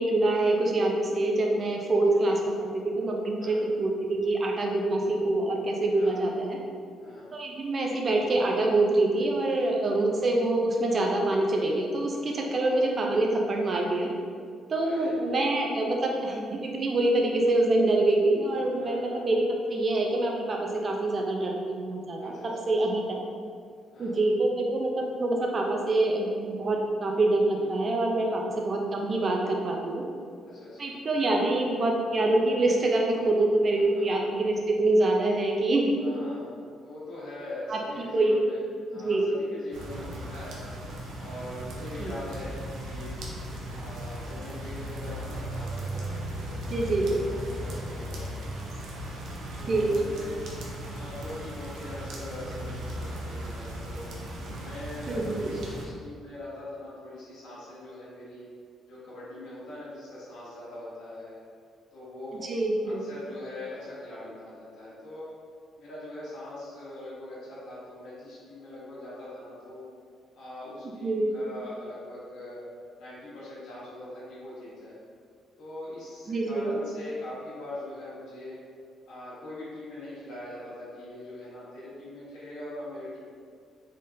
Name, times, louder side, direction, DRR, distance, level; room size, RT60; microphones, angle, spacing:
voice 1, 0.0-6.6 7.3-14.1 14.7-22.3 22.7-23.2 24.0-30.0 30.8-35.9 37.7-38.3 39.0-39.3 42.0-42.1 46.7-47.1 49.7-50.0 55.1-55.5 62.3-63.0 71.0-71.3 76.3-76.7, right 2 dB, 35° right, 0 dB, 0.6 m, -25 dB
voice 2, 5.9-6.3 7.0-7.3 9.8-10.0 12.5-12.9 14.8-15.1 18.7-19.3 22.2-22.7 23.9-24.2 27.5-27.9 28.1-28.5 30.4-31.0 33.7-33.8 34.3-34.4 36.0-38.6 38.9-40.7 41.2-43.2 43.7-48.3 49.6-50.4 50.9-54.1 54.6-58.5 58.9-61.4 61.9-62.4 62.8-65.3 65.8-69.8 70.3-72.6 73.0-75.0 75.6-78.6 79.1-83.2, left 1 dB, 75° left, -10 dB, 1.4 m, -42 dB
sound 1, 39.7-55.9, right 1 dB, 75° right, 0.7 m, -37 dB
3.8 x 3.7 x 2.7 m, 2.2 s
cardioid pair, 125°, 0 cm